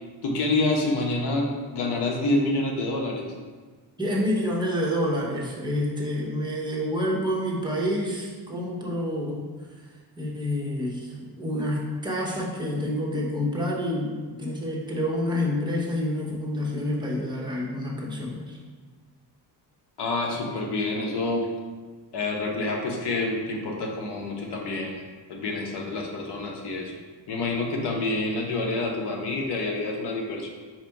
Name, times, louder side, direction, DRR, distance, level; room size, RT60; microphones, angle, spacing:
voice 1, 0.2-3.3 20.0-21.5 22.1-25.0 25.3-26.9 27.3-30.5, left 2 dB, 80° left, 1 dB, 0.9 m, -27 dB
voice 2, 4.0-9.9 10.2-18.6, left 1 dB, 10° right, -4 dB, 0.9 m, -28 dB
4.4 x 2.6 x 4.6 m, 1.4 s
cardioid pair, 140°, 40 cm